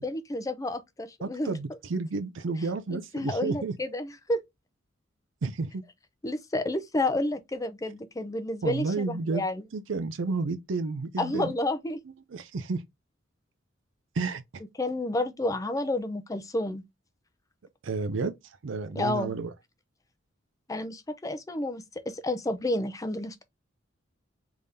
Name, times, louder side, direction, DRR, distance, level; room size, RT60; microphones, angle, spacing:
voice 1, 0.0-1.5 2.9-4.4 6.2-9.6 11.2-12.0 14.8-16.8 18.9-19.4 20.7-23.4, left 1 dB, 15° left, 0.5 m, -30 dB
voice 2, 1.2-3.7 5.4-5.8 8.6-9.4 9.7-11.5 12.3-12.8 14.2-14.4 17.8-18.3 18.6-19.5, right 3 dB, 70° right, 0.5 m, -31 dB
3.5 x 3.5 x 2.7 m
head